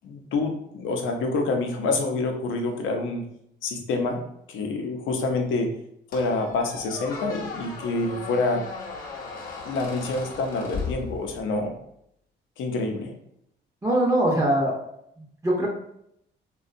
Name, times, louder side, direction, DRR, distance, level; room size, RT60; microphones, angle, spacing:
voice 1, 0.0-3.3 3.6-4.2 4.5-5.7 6.1-8.6 9.6-11.7 12.6-13.1, left 3 dB, 80° left, 3 dB, 0.5 m, -27 dB
Squeak, 6.1-11.6, left 4 dB, 45° left, 0.7 m, -37 dB
voice 2, 13.8-14.7 15.4-15.7, right 1 dB, 15° right, -3 dB, 0.6 m, -21 dB
2.6 x 2.2 x 2.5 m, 0.75 s
cardioid pair, 90°, 20 cm